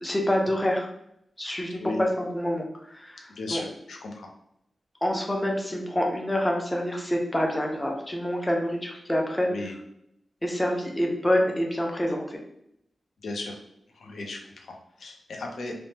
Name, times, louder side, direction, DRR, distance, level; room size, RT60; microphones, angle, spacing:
voice 1, 0.0-0.9 1.4-2.1 2.3-3.6 5.0-9.5 10.4-12.4, equal, 10° left, 0 dB, 0.4 m, -27 dB
voice 2, 3.4-4.3 9.5-9.7 13.2-13.6 13.9-15.9, left 2 dB, 80° left, 1 dB, 0.6 m, -36 dB
3.2 x 2.1 x 2.8 m, 0.76 s
wide cardioid pair, 160°, 0 cm